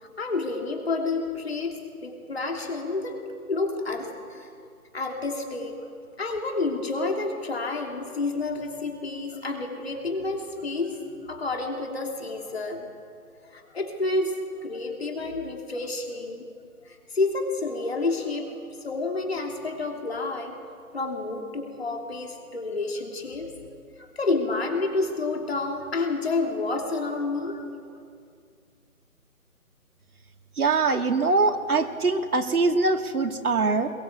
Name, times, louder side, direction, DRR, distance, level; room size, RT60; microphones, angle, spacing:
voice 1, 0.0-3.2 3.5-4.5 4.9-5.9 6.2-12.9 13.4-16.5 16.8-20.6 20.9-27.7, left 3 dB, 45° left, 2 dB, 3.1 m, -29 dB
voice 2, 30.6-33.9, right 3 dB, 70° right, 6 dB, 2.1 m, -23 dB
22.5 x 20.0 x 8.1 m, 2.2 s
hypercardioid pair, 175°, 45 cm